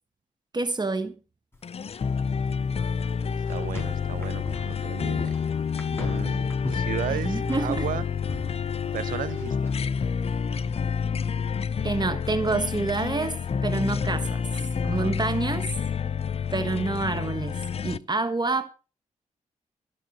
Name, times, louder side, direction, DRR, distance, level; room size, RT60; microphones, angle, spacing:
voice 1, 0.5-1.1 7.1-7.9 11.8-15.7 16.5-18.7, right 3 dB, 30° right, 1.5 m, -28 dB
sound 1, 1.5-10.4, left 1 dB, 15° left, 5.7 m, -42 dB
sound 2, 1.6-18.0, left 6 dB, 45° left, 0.6 m, -28 dB
voice 2, 3.3-5.3 6.0-8.1 8.9-9.6 14.8-15.2, right 11 dB, 80° right, 0.8 m, -35 dB
14.0 x 6.4 x 6.4 m
supercardioid pair, 55°, 14 cm